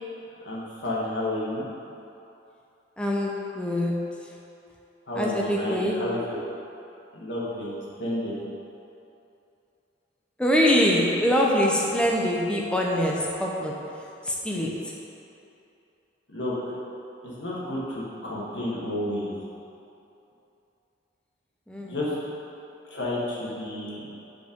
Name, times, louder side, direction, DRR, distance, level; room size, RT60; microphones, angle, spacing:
voice 1, 0.4-1.7 5.1-6.2 7.1-8.4 16.3-16.8 17.2-19.3 21.8-22.1 22.8-24.1, left 1 dB, 70° left, -6 dB, 1.5 m, -31 dB
voice 2, 3.0-4.0 5.1-6.0 10.4-13.8 14.2-14.9 21.7-22.0, equal, 5° left, -2 dB, 0.6 m, -24 dB
5.5 x 4.5 x 5.1 m, 2.8 s
head